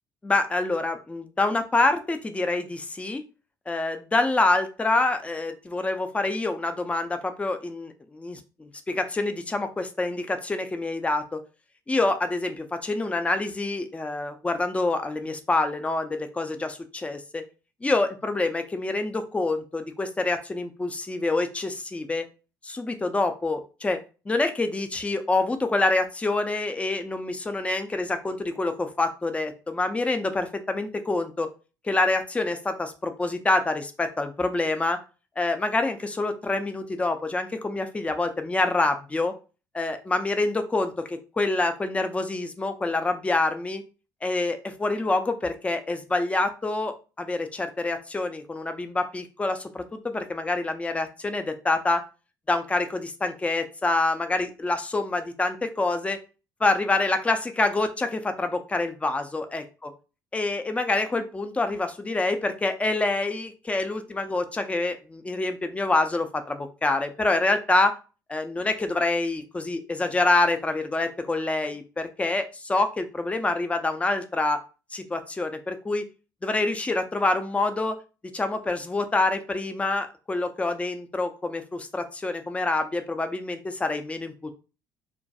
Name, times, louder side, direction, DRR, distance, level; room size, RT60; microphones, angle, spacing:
voice 1, 0.2-3.2 3.7-11.4 11.9-17.4 17.8-22.2 22.6-24.0 24.3-31.5 31.8-35.0 35.4-39.3 39.7-43.8 44.2-52.0 52.5-56.2 56.6-59.9 60.3-67.9 68.3-74.6 74.9-76.0 76.4-77.9 78.3-84.5, left 2 dB, 10° left, 7 dB, 0.4 m, -26 dB
2.2 x 2.2 x 2.6 m, 0.33 s
figure-of-eight pair, 55°, 11 cm